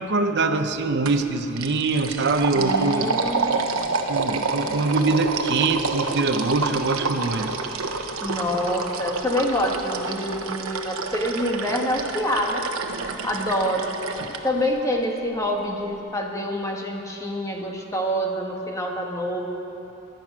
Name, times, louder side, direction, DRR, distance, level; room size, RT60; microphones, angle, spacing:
voice 1, 0.0-3.1 4.1-7.5, right 3 dB, 55° right, 7 dB, 0.8 m, -23 dB
sound 1, 1.1-1.3 1.6-14.4, right 4 dB, 85° right, 1.0 m, -28 dB
voice 2, 2.5-3.9 8.2-12.7 13.2-19.4, equal, 15° left, 0 dB, 1.5 m, -26 dB
22.5 x 9.2 x 6.1 m, 3.0 s
head